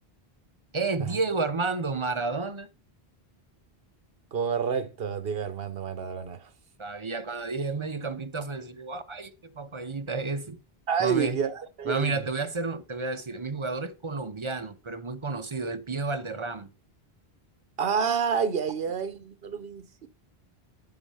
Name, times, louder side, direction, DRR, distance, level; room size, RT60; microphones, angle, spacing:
voice 1, 0.7-2.7 6.8-10.6 11.0-11.4 11.8-16.7, right 3 dB, 35° right, 0.6 m, -31 dB
voice 2, 4.3-6.4 10.9-12.2 17.8-20.1, right 6 dB, 65° right, 1.1 m, -29 dB
9.5 x 4.6 x 5.5 m
omnidirectional pair, 1.0 m